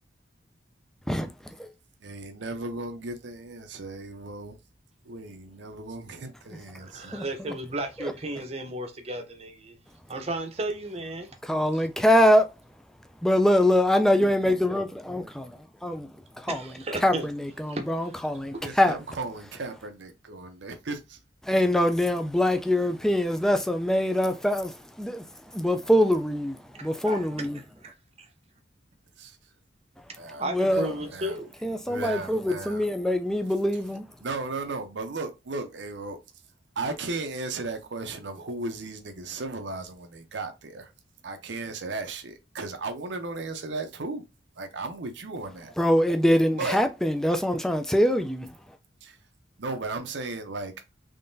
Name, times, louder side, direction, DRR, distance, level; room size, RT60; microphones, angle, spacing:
voice 1, 1.1-1.7 7.1-7.3 11.4-12.5 13.2-16.7 17.0-19.0 21.4-27.6 30.5-30.9 31.6-34.0 45.8-48.5, left 1 dB, 5° left, 0.4 m, -24 dB
voice 2, 2.0-4.6 5.0-7.2 18.6-21.2 29.2-29.4 30.2-31.4 31.9-32.9 34.2-36.2 36.8-40.9 41.2-44.2 44.6-45.7 46.6-46.8 49.0-49.2 49.6-50.7, right 3 dB, 75° right, 0.7 m, -35 dB
voice 3, 6.9-9.8 10.1-11.3 16.5-17.3 17.7-17.9 27.0-27.5 27.8-28.3 30.4-31.5, right 1 dB, 35° right, 0.7 m, -33 dB
3.6 x 3.3 x 2.6 m
head